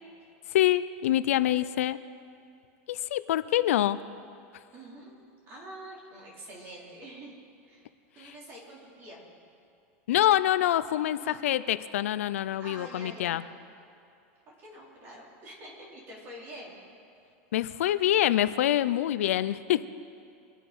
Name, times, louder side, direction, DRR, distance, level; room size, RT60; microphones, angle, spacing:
voice 1, 0.5-2.0 2.9-4.0 10.1-13.4 17.5-19.9, left 13 dB, 85° left, 14 dB, 0.6 m, -25 dB
voice 2, 4.7-5.2 5.5-7.3 7.6-9.3 11.2-11.4 12.6-13.4 14.5-16.8, right 1 dB, 30° right, -3 dB, 4.2 m, -46 dB
25.0 x 9.2 x 6.2 m, 2.5 s
supercardioid pair, 165°, 7 cm